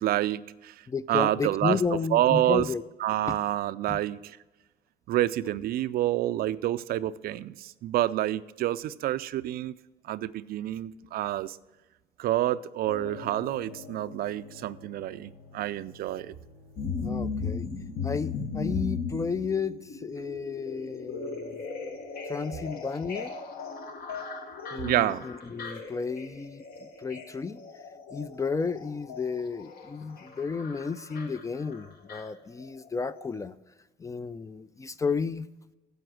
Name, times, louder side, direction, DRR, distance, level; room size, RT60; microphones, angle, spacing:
voice 1, 0.0-0.7 1.1-1.8 2.1-2.7 3.0-4.4 5.1-9.7 10.1-11.6 12.2-16.3 24.8-25.2, right 13 dB, 65° right, 0.4 m, -28 dB
voice 2, 0.9-2.8 3.3-3.4 3.9-4.0 17.0-17.7 18.0-21.6 22.3-23.4 24.7-27.6 28.1-33.6 34.0-35.5, left 5 dB, 20° left, 0.4 m, -32 dB
sound 1, 12.9-22.0, left 5 dB, 90° left, 1.5 m, -50 dB
sound 2, 16.8-32.9 33.2-33.3, left 4 dB, 65° left, 1.4 m, -37 dB
9.3 x 7.9 x 6.2 m
cardioid pair, 110°, 17 cm